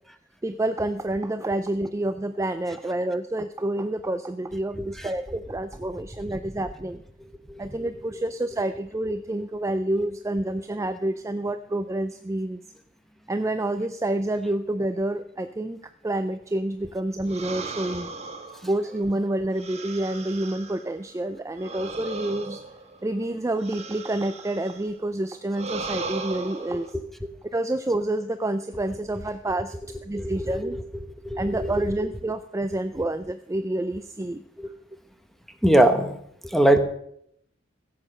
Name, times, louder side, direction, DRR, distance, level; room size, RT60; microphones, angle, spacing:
voice 1, 0.4-7.0 7.6-12.6 13.3-18.1 18.6-22.6 23.0-26.9 27.5-29.8 30.0-30.8 31.4-34.4, right 1 dB, 15° right, 10 dB, 0.4 m, -28 dB
sound 1, 17.3-20.9 21.5-24.9 25.5-26.9, right 3 dB, 35° right, 1.3 m, -37 dB
voice 2, 35.6-36.2 36.5-36.8, right 1 dB, ahead, 8 dB, 1.0 m, -20 dB
15.5 x 7.6 x 6.4 m, 0.73 s
head